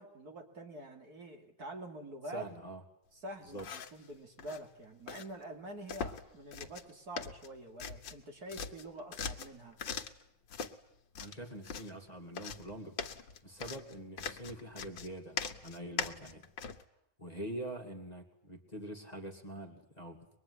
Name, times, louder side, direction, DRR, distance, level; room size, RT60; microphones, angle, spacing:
voice 1, 0.0-2.5 3.1-9.8, right 1 dB, 55° right, 3 dB, 3.3 m, -46 dB
voice 2, 2.3-2.8 3.5-3.7 11.2-13.0 13.4-16.5 17.2-20.3, right 1 dB, 20° left, 1 dB, 2.5 m, -44 dB
sound 1, 3.5-4.0 4.4-4.6 5.1-5.3 5.9-6.3 6.5-6.9 7.2-8.2 8.5-10.2 10.5-10.7 11.2-11.9 12.3-16.8, left 6 dB, 90° left, 2.1 m, -41 dB
24.0 x 22.0 x 9.8 m, 0.79 s
omnidirectional pair, 2.0 m